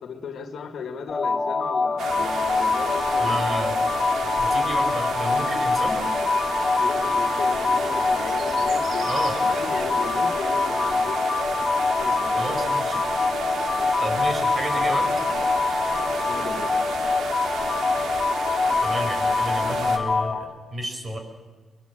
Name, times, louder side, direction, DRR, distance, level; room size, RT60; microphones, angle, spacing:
voice 1, 0.0-3.5 6.8-11.2 11.9-12.6 13.5-13.9 16.3-16.7, left 6 dB, 70° left, 7 dB, 1.9 m, -36 dB
sound 1, 1.1-20.4, left 4 dB, 30° left, 2.5 m, -24 dB
sound 2, 2.0-20.0, right 4 dB, 85° right, 2.8 m, -32 dB
voice 2, 3.2-3.8 4.4-6.0 9.1-9.4 12.4-13.0 14.0-15.1 18.8-20.5 20.7-21.2, right 1 dB, 35° right, 4 dB, 5.6 m, -31 dB
24.0 x 22.0 x 7.7 m, 1.3 s
cardioid pair, 85°, 0 cm